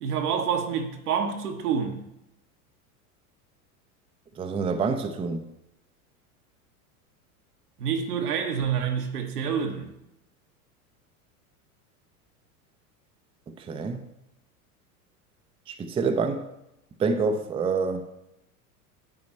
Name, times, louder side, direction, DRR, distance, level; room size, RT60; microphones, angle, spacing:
voice 1, 0.0-2.0 7.8-9.9, right 7 dB, 80° right, 1.2 m, -27 dB
voice 2, 4.4-5.5 13.7-14.0 15.7-16.4 17.0-18.1, right 4 dB, 10° right, 0.4 m, -27 dB
9.6 x 3.9 x 4.3 m
hypercardioid pair, 95°, 45 cm